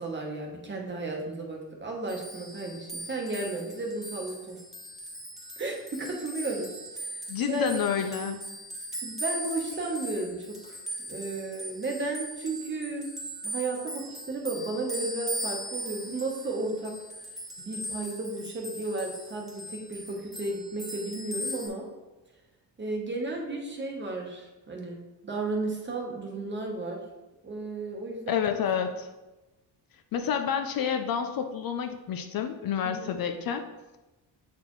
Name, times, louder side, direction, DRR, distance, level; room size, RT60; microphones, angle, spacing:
voice 1, 0.0-4.6 5.6-6.6 7.1-7.7 9.0-10.8 11.1-13.1 13.4-16.9 17.6-21.9 22.8-25.0 25.2-27.0 27.4-28.4 33.0-33.2, right 2 dB, 25° right, 0 dB, 1.0 m, -33 dB
sound 1, 2.1-21.7, equal, ahead, 1.2 m, -39 dB
voice 2, 7.3-8.5 28.3-29.1 30.1-33.6, left 8 dB, 55° left, 6 dB, 0.5 m, -29 dB
7.7 x 4.3 x 3.1 m, 1.1 s
cardioid pair, 150°, 43 cm